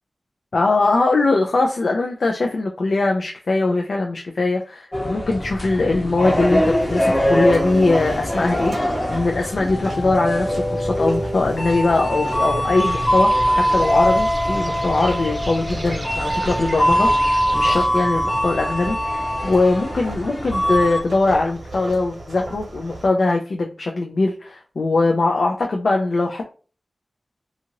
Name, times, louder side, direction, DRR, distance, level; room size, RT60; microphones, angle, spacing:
voice 1, 0.5-19.0 19.4-26.5, left 3 dB, 80° left, 1 dB, 0.4 m, -21 dB
sound 1, 4.9-21.0, equal, 30° left, 0.8 m, -22 dB
sound 2, 6.2-23.1, right 1 dB, 75° right, 0.9 m, -36 dB
sound 3, 12.8-17.9, right 1 dB, 40° right, 0.6 m, -34 dB
2.7 x 2.4 x 2.9 m, 0.38 s
wide cardioid pair, 60°, 0 cm